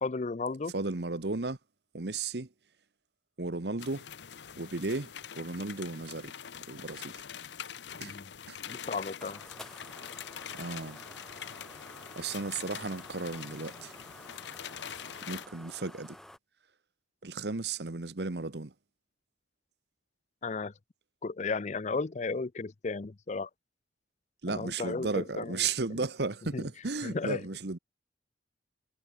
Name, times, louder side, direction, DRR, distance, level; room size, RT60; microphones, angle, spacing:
voice 1, 0.0-0.7 8.0-8.3 8.7-9.4 20.4-20.7 21.2-23.5 24.5-25.6 26.5-26.7 27.0-27.4, left 4 dB, 40° left, 0.5 m, -34 dB
voice 2, 0.7-1.6 1.9-2.5 3.4-4.1 4.6-6.3 6.7-7.0 8.0-8.1 8.5-8.6 10.5-11.0 12.2-13.9 15.2-16.2 17.2-18.7 24.4-27.8, right 3 dB, 65° right, 1.2 m, -34 dB
sound 1, 3.8-15.5, left 8 dB, 80° left, 0.8 m, -44 dB
sound 2, 9.2-16.4, equal, 5° left, 3.0 m, -51 dB
head